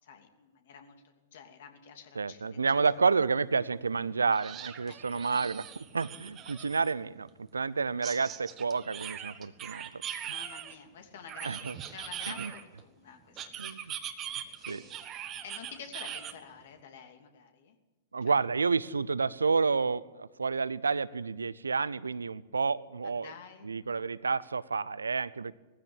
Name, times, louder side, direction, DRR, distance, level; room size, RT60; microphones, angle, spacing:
voice 1, 0.0-2.9 4.9-5.3 10.3-14.0 14.4-15.0 15.4-17.8 18.2-18.4 23.0-23.7, left 7 dB, 60° left, 5 dB, 2.9 m, -50 dB
voice 2, 2.2-10.3 11.4-11.8 12.3-12.5 13.6-13.9 14.7-14.8 18.1-23.3 23.6-25.5, right 4 dB, 85° right, 19 dB, 0.6 m, -30 dB
sound 1, 2.8-2.9 3.3-3.4 4.3-6.9 8.0-10.7 11.3-12.8 13.4-16.3, right 10 dB, 30° right, 1.6 m, -41 dB
19.0 x 15.0 x 9.0 m, 1.1 s
figure-of-eight pair, 105°, 0 cm